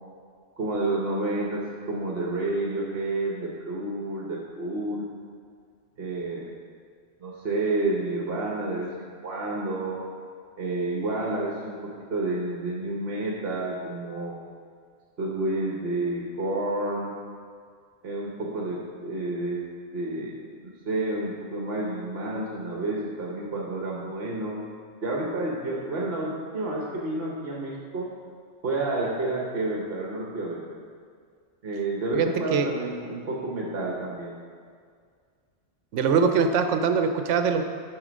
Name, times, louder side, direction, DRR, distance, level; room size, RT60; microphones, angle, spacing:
voice 1, 0.6-5.0 6.0-6.5 7.2-8.9 9.2-10.0 10.6-14.4 15.2-17.1 18.0-19.6 19.9-20.3 20.8-24.7 25.0-28.1 28.6-30.6 31.6-34.4, right 2 dB, 55° right, -3 dB, 1.1 m, -30 dB
voice 2, 32.1-32.7 35.9-37.6, right 5 dB, 80° right, 7 dB, 1.0 m, -22 dB
7.8 x 5.7 x 5.1 m, 2.1 s
omnidirectional pair, 1.2 m